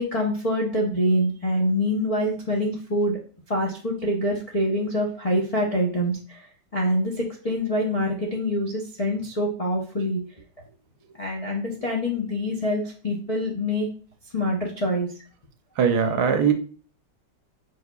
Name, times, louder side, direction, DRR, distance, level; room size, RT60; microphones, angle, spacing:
voice 1, 0.0-3.2 3.5-6.5 6.7-10.2 11.2-13.9 14.3-15.1, equal, 50° left, -4 dB, 0.4 m, -25 dB
voice 2, 15.8-16.5, right 7 dB, 75° right, 8 dB, 1.1 m, -20 dB
4.9 x 4.8 x 2.3 m, 0.41 s
omnidirectional pair, 1.9 m